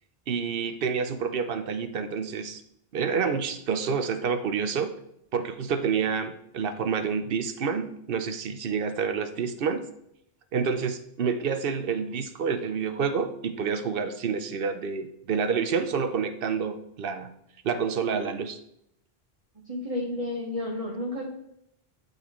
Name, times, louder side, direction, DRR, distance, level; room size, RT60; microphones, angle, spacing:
voice 1, 0.3-2.6 2.9-4.9 5.3-9.8 10.5-17.3 17.6-18.6, right 6 dB, 65° right, 9 dB, 0.9 m, -28 dB
voice 2, 19.7-21.2, left 1 dB, 35° right, -3 dB, 1.2 m, -31 dB
12.0 x 4.0 x 3.1 m, 0.75 s
omnidirectional pair, 1.0 m